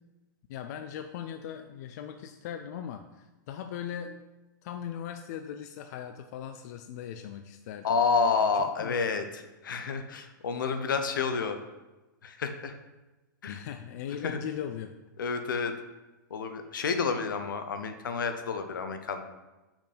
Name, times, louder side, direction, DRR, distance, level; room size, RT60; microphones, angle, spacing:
voice 1, 0.5-4.2 4.6-8.0 8.5-9.0 13.5-14.9, left 9 dB, 55° left, 8 dB, 0.4 m, -39 dB
voice 2, 7.8-11.6 12.2-12.7 13.4-13.6 14.2-14.4 15.2-15.7 16.3-19.2, left 5 dB, 80° left, 8 dB, 0.8 m, -29 dB
5.9 x 4.3 x 5.1 m, 1.1 s
hypercardioid pair, 120°, 11 cm